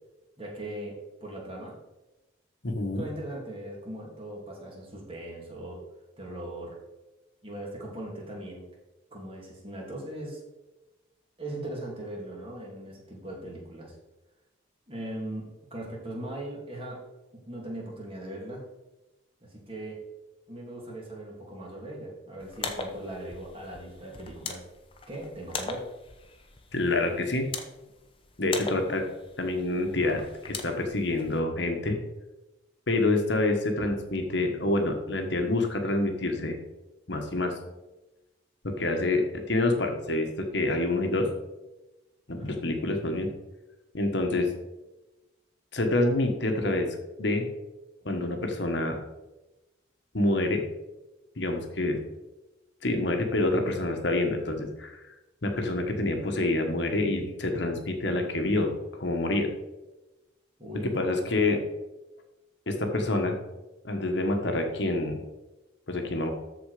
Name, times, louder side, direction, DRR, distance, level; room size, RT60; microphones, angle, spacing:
voice 1, 0.4-1.8 2.9-5.8 6.2-6.8 7.4-8.6 9.1-10.4 11.4-13.9 14.9-17.0 17.3-18.6 19.4-20.0 20.5-24.6 25.1-25.9 42.3-42.7 60.6-61.2, right 1 dB, 30° right, -2 dB, 2.6 m, -39 dB
voice 2, 2.6-3.0 26.7-27.5 28.4-29.1 29.4-32.0 32.9-36.6 37.1-37.6 38.6-41.3 42.3-43.3 43.9-44.5 45.7-46.9 47.2-47.4 48.0-49.0 50.1-50.6 51.4-52.0 52.8-55.0 55.4-59.5 60.8-61.6 62.7-63.4 63.8-65.2 65.9-66.3, left 2 dB, 60° left, 4 dB, 1.3 m, -27 dB
sound 1, 22.4-31.4, left 4 dB, 25° left, 1.0 m, -40 dB
13.5 x 4.6 x 4.9 m, 1.0 s
head